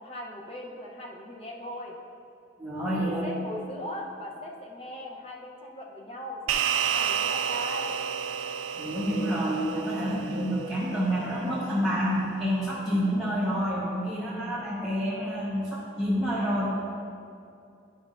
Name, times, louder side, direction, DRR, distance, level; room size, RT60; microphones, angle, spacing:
voice 1, 0.0-1.9 2.9-7.9, left 1 dB, 30° left, -1 dB, 0.8 m, -39 dB
voice 2, 2.6-3.3 8.7-16.7, equal, ahead, -10 dB, 1.1 m, -28 dB
sound 1, 6.5-11.1, right 8 dB, 90° right, 0.3 m, -30 dB
11.0 x 5.3 x 2.5 m, 2.5 s
head